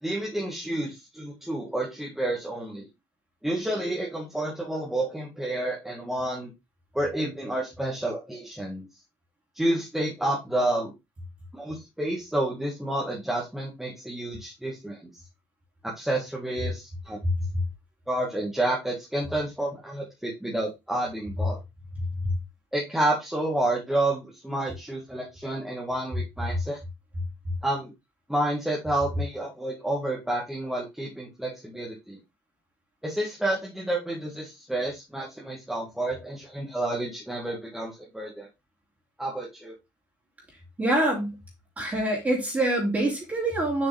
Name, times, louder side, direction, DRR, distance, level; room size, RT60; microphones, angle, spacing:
voice 1, 0.0-2.9 3.4-6.5 6.9-8.9 9.5-10.9 11.5-15.0 15.8-17.2 18.1-21.6 22.7-26.8 27.6-27.9 28.3-32.2 33.0-38.5 39.2-39.7, right 1 dB, 5° right, -4 dB, 1.8 m, -30 dB
voice 2, 40.8-41.4 41.8-43.9, right 1 dB, 20° right, -2 dB, 2.9 m, -25 dB
7.5 x 5.2 x 3.4 m, 0.22 s
cardioid pair, 140°, 8 cm